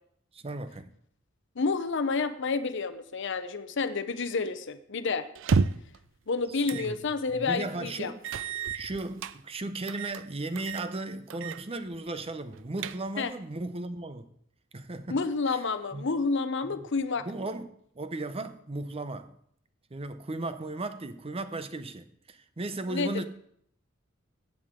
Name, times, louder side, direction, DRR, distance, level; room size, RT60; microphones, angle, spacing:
voice 1, 0.3-0.9 6.5-8.2 8.7-14.3 14.7-15.2 15.5-15.6 15.9-16.0 16.6-16.8 17.2-19.3 19.9-23.3, right 2 dB, 30° right, 0.7 m, -36 dB
voice 2, 1.6-5.3 6.3-8.1 13.2-13.3 15.1-17.2 22.9-23.3, left 4 dB, 60° left, 0.8 m, -29 dB
sound 1, 5.4-6.0 6.7-6.9 7.3-7.4 8.2-9.4 9.9-10.2 10.6-10.9 11.3-11.6 11.9-12.0 12.5-13.3, right 5 dB, 65° right, 0.5 m, -30 dB
15.0 x 8.5 x 3.7 m
head